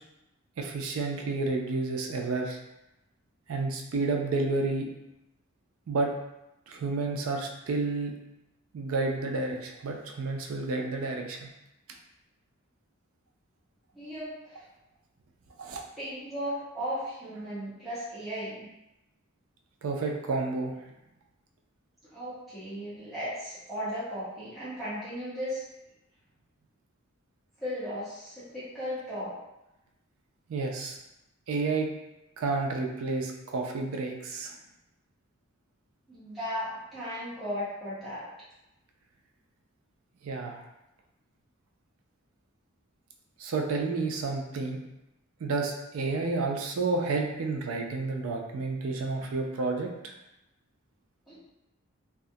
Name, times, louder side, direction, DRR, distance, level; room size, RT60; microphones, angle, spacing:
voice 1, 0.6-2.6 3.5-4.9 5.9-6.1 6.7-8.1 8.7-11.5 15.6-15.8 19.8-20.7 30.5-31.0 31.5-31.9 32.4-34.5 40.2-40.6 43.4-44.8 45.4-50.1, right 3 dB, 80° right, 2 dB, 0.4 m, -30 dB
voice 2, 13.9-14.6 16.0-18.7 22.1-25.6 27.6-29.3 36.1-38.2 51.3-51.4, equal, ahead, -14 dB, 0.8 m, -36 dB
2.3 x 2.0 x 2.6 m, 0.91 s
head